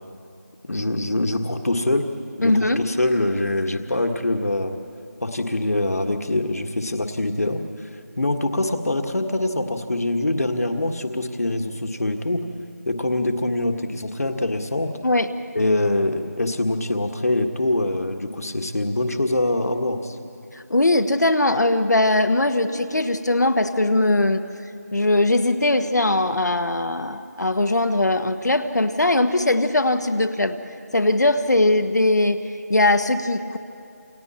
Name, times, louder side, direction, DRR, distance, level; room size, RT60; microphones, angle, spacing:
voice 1, 0.7-2.1 2.4-4.8 5.2-7.9 8.2-12.4 12.9-14.9 15.6-20.2, left 2 dB, 60° left, 5 dB, 1.7 m, -24 dB
voice 2, 2.4-2.8 15.0-15.3 20.7-24.4 24.9-30.6 30.9-33.6, left 2 dB, 80° left, 8 dB, 1.4 m, -20 dB
28.5 x 26.0 x 4.4 m, 2.5 s
figure-of-eight pair, 175°, 9 cm